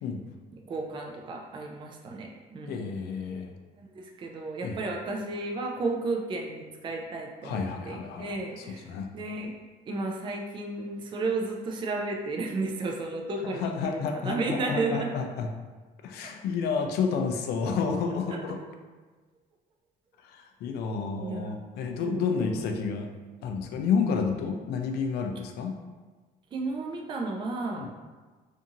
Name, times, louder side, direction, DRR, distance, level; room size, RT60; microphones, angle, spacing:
voice 1, 0.5-2.8 3.8-9.6 9.9-15.1 18.3-18.4 21.2-21.7 22.0-22.5 26.5-28.0, right 3 dB, 30° right, 1 dB, 0.3 m, -33 dB
voice 2, 2.7-3.5 4.6-4.8 7.4-9.1 13.4-15.5 16.0-18.6 20.2-23.1 23.4-25.8 27.7-27.9, left 5 dB, 75° left, 4 dB, 0.4 m, -30 dB
2.6 x 2.5 x 2.7 m, 1.3 s
cardioid pair, 110°, 17 cm